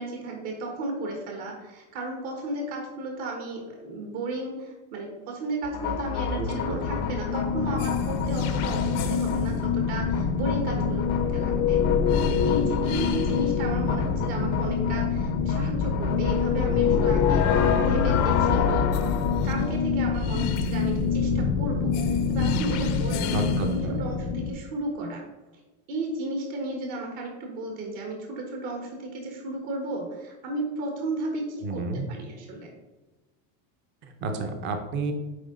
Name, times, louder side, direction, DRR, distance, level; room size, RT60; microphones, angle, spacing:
voice 1, 0.0-11.8 12.3-19.2 19.4-25.2 25.9-32.7, right 2 dB, 55° right, 1 dB, 1.4 m, -34 dB
sound 1, 5.6-24.5, left 6 dB, 35° left, 0.5 m, -25 dB
voice 2, 6.4-6.8 16.6-17.2 23.3-23.9 31.6-32.1 34.0-35.1, right 3 dB, 25° right, 5 dB, 0.6 m, -31 dB
9.5 x 3.9 x 3.7 m, 1.2 s
supercardioid pair, 165°, 48 cm